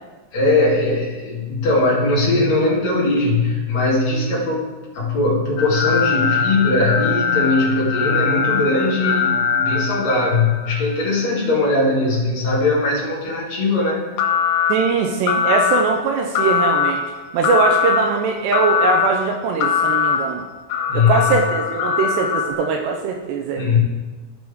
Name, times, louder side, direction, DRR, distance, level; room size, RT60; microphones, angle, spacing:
voice 1, 0.3-4.7 4.9-14.0 20.9-21.3 23.5-23.8, left 2 dB, 45° left, -7 dB, 2.8 m, -19 dB
sound 1, 5.6-10.9 14.2-14.7 15.3-15.8 16.4-16.9 17.4-18.0 18.5-19.1 19.6-20.2 20.7-22.5, left 7 dB, 90° left, 2.3 m, -21 dB
voice 2, 14.7-17.0 17.3-20.4 20.9-23.6, right 5 dB, 80° right, 2 dB, 2.4 m, -21 dB
16.0 x 6.1 x 3.5 m, 1.3 s
omnidirectional pair, 5.5 m